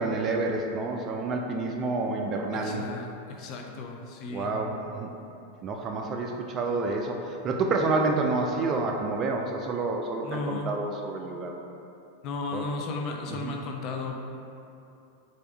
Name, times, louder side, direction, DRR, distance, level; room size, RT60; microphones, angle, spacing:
voice 1, 0.0-2.9 4.3-5.1 5.6-11.6 12.5-12.6 13.4-13.5, right 3 dB, 35° right, 2 dB, 0.3 m, -29 dB
voice 2, 2.5-4.5 10.2-10.7 12.2-14.2, left 3 dB, 45° left, 2 dB, 0.4 m, -35 dB
3.4 x 2.5 x 3.4 m, 2.8 s
hypercardioid pair, 120°, 0 cm